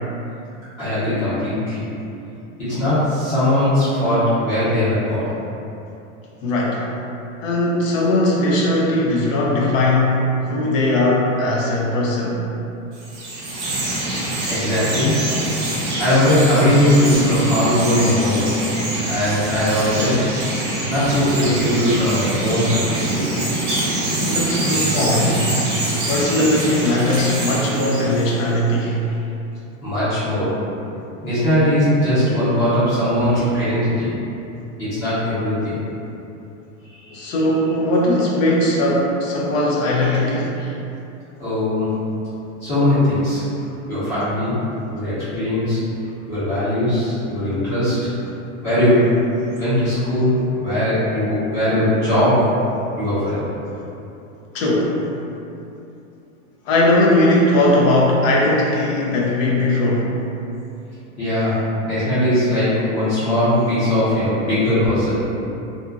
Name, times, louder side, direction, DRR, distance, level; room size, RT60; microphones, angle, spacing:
voice 1, 0.8-1.9 2.6-5.4 14.5-15.4 16.0-18.7 19.1-20.3 20.9-23.4 29.8-30.7 31.2-34.2 34.8-35.8 36.8-37.3 41.4-42.1 42.6-43.5 43.9-45.8 46.3-48.1 48.6-52.6 53.0-53.4 61.2-65.4, left 1 dB, 35° left, -15 dB, 1.1 m, -20 dB
voice 2, 6.4-6.8 7.4-12.5 24.2-25.5 26.1-29.2 33.4-33.5 37.1-40.7 43.6-43.7 54.5-55.0 56.7-60.2, left 1 dB, 75° left, -3 dB, 0.7 m, -19 dB
Chirp tweet, 12.9-28.5, right 1 dB, 30° right, 0.5 m, -24 dB
2.6 x 2.6 x 2.4 m, 2.8 s
supercardioid pair, 160°, 39 cm